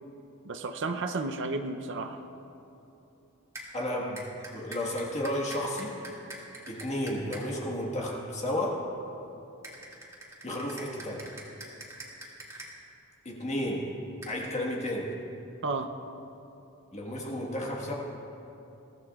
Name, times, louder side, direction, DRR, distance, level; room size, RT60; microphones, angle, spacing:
voice 1, 0.4-2.2 15.6-15.9, right 3 dB, 55° right, 6 dB, 0.6 m, -32 dB
sound 1, 3.5-3.7 4.2-7.4 9.6-12.7 14.2-14.4, right 1 dB, 15° right, 2.4 m, -44 dB
voice 2, 3.7-5.9 6.7-8.9 10.4-11.3 13.2-13.9 14.3-15.1 16.9-17.9, left 1 dB, 30° left, -3 dB, 1.5 m, -32 dB
22.5 x 16.0 x 2.4 m, 2.9 s
head